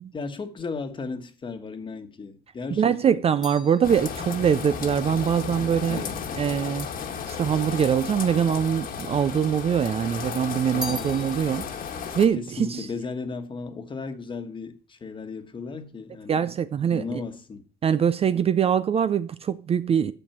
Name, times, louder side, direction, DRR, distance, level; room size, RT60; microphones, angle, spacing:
voice 1, 0.1-3.2 5.9-6.2 10.7-11.1 12.4-16.4 16.9-17.6, left 4 dB, 30° left, 1.3 m, -35 dB
sound 1, 2.4-6.9 7.7-8.5 8.7-9.9 10.2-13.7 14.0-14.5, left 2 dB, 5° right, 1.9 m, -43 dB
voice 2, 2.7-6.0 6.4-11.7 12.1-12.9 16.3-17.2 17.8-20.1, right 8 dB, 35° right, 0.5 m, -23 dB
sound 2, 3.8-12.3, left 6 dB, 60° left, 1.6 m, -34 dB
8.9 x 6.6 x 5.8 m
cardioid pair, 110°, 17 cm